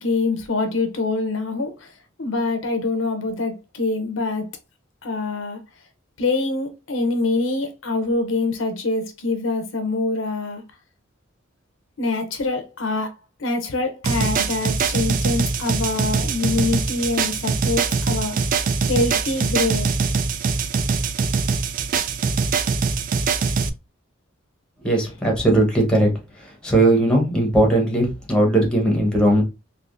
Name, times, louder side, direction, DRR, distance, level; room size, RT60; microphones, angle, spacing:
voice 1, 0.0-1.9 2.2-4.5 5.0-5.6 6.2-10.6 12.0-13.1 13.4-18.4 18.8-19.9, left 3 dB, 75° left, 0.8 m, -24 dB
sound 1, 14.0-23.7, right 5 dB, 45° right, 0.3 m, -23 dB
voice 2, 24.8-26.1 26.6-29.4, right 1 dB, 5° left, 1.1 m, -18 dB
3.5 x 2.8 x 2.6 m
head